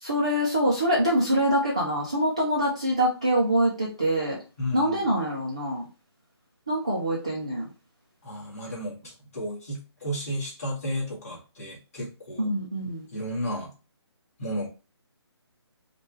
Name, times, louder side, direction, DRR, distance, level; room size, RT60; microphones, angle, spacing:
voice 1, 0.0-4.4 4.7-5.8 6.7-7.6 12.4-13.1, equal, 10° right, -6 dB, 0.3 m, -25 dB
voice 2, 4.6-5.0 8.2-12.5 13.1-13.7 14.4-14.7, equal, 35° left, -5 dB, 2.0 m, -33 dB
5.4 x 2.2 x 3.1 m, 0.32 s
hypercardioid pair, 175°, 14 cm